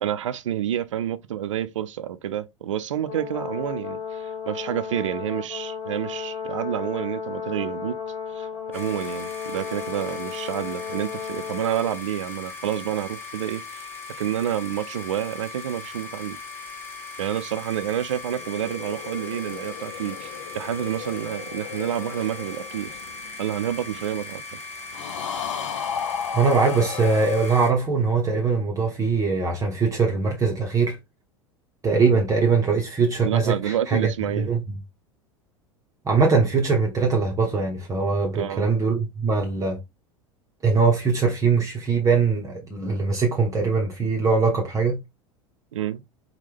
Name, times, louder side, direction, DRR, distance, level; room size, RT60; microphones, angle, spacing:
voice 1, 0.0-8.0 8.3-8.5 8.7-13.9 14.2-16.4 17.2-22.9 23.4-24.4 33.2-34.5 38.3-38.7 45.7-46.0, right 11 dB, 70° right, 0.4 m, -29 dB
Brass instrument, 3.1-12.0, left 6 dB, 35° left, 1.6 m, -34 dB
sound 1, 8.7-27.7, left 4 dB, 15° left, 1.2 m, -39 dB
sound 2, 18.3-23.9 24.9-27.3, left 7 dB, 70° left, 0.5 m, -34 dB
voice 2, 26.3-31.0 31.8-34.1 34.4-34.6 36.0-39.8 40.6-45.0, right 4 dB, 20° right, 0.8 m, -22 dB
4.3 x 2.2 x 3.4 m
figure-of-eight pair, 80°, 17 cm